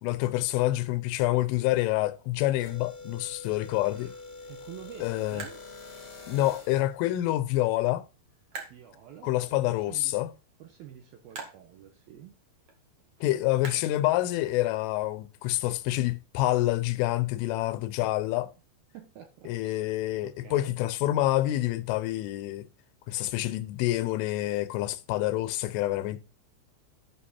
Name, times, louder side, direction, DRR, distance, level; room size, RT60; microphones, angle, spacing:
voice 1, 0.0-4.1 5.0-5.4 6.3-8.1 9.2-10.3 13.2-18.5 19.5-22.7 23.1-26.2, left 16 dB, 85° left, 3.2 m, -27 dB
sound 1, 1.5-14.7, right 4 dB, 50° right, 2.0 m, -50 dB
sound 2, 2.5-6.9, left 3 dB, 35° left, 0.9 m, -45 dB
voice 2, 4.5-5.6 8.7-10.2 10.6-12.4 13.7-14.0 18.0-18.1 18.9-19.8 20.2-20.8, right 10 dB, 70° right, 2.4 m, -48 dB
12.0 x 5.9 x 4.3 m
omnidirectional pair, 5.5 m